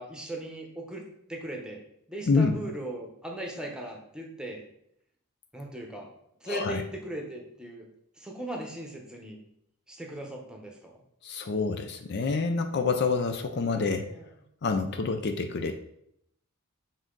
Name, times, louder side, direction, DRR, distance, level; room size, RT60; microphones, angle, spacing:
voice 1, 0.0-1.8 2.1-4.7 5.5-6.1 6.4-7.9 8.2-9.4 9.9-10.9 13.7-14.3, right 1 dB, 5° right, 1 dB, 0.9 m, -38 dB
voice 2, 2.3-2.6 6.5-6.8 11.2-14.1 14.6-15.9, left 4 dB, 50° left, 6 dB, 0.4 m, -27 dB
7.4 x 3.7 x 3.8 m, 0.74 s
head